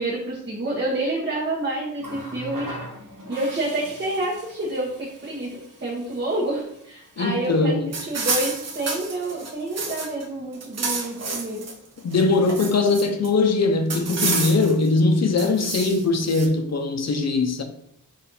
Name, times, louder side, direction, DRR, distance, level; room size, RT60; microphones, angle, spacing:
voice 1, 0.0-2.7 3.3-5.5 5.8-11.6, right 2 dB, 35° right, 1.0 m, -28 dB
Water tap faucet, 2.0-7.5 8.7-8.9, right 1 dB, 75° right, 1.1 m, -41 dB
voice 2, 7.2-7.9 12.0-17.6, left 3 dB, 55° left, 0.6 m, -21 dB
sound 1, 7.9-10.2 10.5-11.7 12.1-13.3 13.9-14.9 15.4-16.5, right 4 dB, 50° right, 0.7 m, -29 dB
4.1 x 2.6 x 4.0 m
wide cardioid pair, 125°, 33 cm